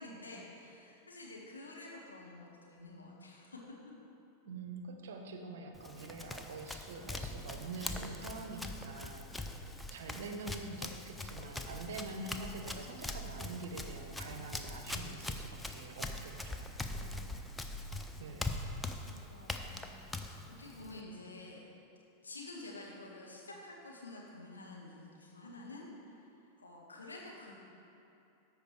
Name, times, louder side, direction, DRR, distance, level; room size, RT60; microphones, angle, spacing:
voice 1, 0.0-3.6 8.0-8.4 9.4-9.7 16.9-18.1 19.0-20.1 20.5-21.7 22.2-26.2 26.6-27.5, left 2 dB, 75° left, -3 dB, 1.7 m, -50 dB
voice 2, 4.5-9.6 9.9-16.7 18.2-18.5, right 3 dB, 60° right, 4 dB, 0.9 m, -45 dB
Run, 5.7-21.0, left 2 dB, 5° left, 0.5 m, -42 dB
13.5 x 5.2 x 4.7 m, 2.7 s
figure-of-eight pair, 90°, 0 cm